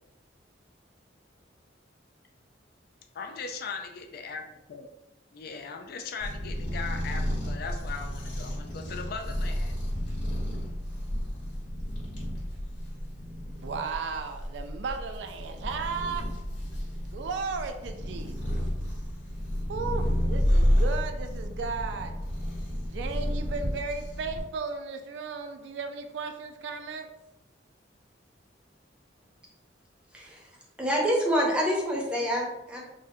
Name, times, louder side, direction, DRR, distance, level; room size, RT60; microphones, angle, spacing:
voice 1, 3.1-4.4 4.7-4.9 5.3-9.8, left 5 dB, 55° left, 5 dB, 0.3 m, -38 dB
sound 1, 6.2-24.4, equal, 75° left, 1.2 m, -31 dB
voice 2, 13.6-16.2 17.1-18.6 19.7-22.1 22.8-27.1, right 4 dB, 65° right, 6 dB, 0.3 m, -35 dB
voice 3, 30.1-30.5 30.8-32.8, equal, 5° right, -3 dB, 0.6 m, -27 dB
3.6 x 2.1 x 2.6 m, 0.91 s
head